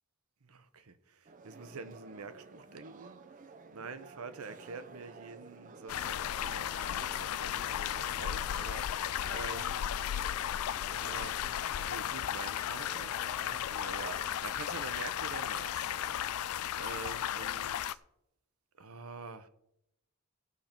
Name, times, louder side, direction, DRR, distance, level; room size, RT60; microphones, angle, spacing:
voice 1, 0.5-1.2 1.4-3.2 3.7-9.8 10.9-11.4 11.8-18.0 18.8-19.5, right 4 dB, 75° right, 0.9 m, -46 dB
sound 1, 1.2-14.4, right 4 dB, 35° right, 0.5 m, -53 dB
sound 2, 5.9-17.9, left 11 dB, 75° left, 0.4 m, -35 dB
17.0 x 6.8 x 4.4 m
head